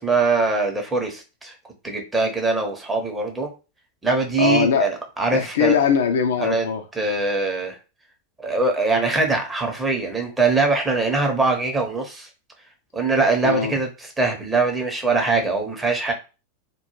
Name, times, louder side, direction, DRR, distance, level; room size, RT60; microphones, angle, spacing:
voice 1, 0.0-1.5 1.8-3.5 4.0-5.8 6.4-6.7 6.9-7.8 8.4-12.3 12.9-16.1, right 3 dB, 10° right, 0.7 m, -22 dB
voice 2, 4.4-4.9 5.3-6.8 13.4-13.8, left 7 dB, 60° left, 0.3 m, -21 dB
2.2 x 2.2 x 3.0 m
figure-of-eight pair, 90°, 0 cm